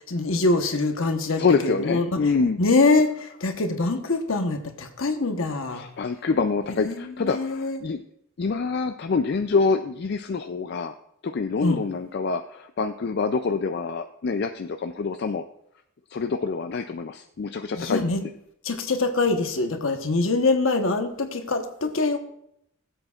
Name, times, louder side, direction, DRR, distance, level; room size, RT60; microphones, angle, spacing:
voice 1, 0.0-2.1 2.6-5.8 6.8-7.8 11.6-11.8 17.7-18.2 18.6-22.2, left 3 dB, 70° left, 6 dB, 1.1 m, -24 dB
voice 2, 1.4-2.6 5.7-8.0 8.4-10.9 11.2-15.4 16.1-18.0, left 4 dB, 50° left, 7 dB, 0.4 m, -26 dB
19.5 x 7.9 x 2.4 m, 0.74 s
head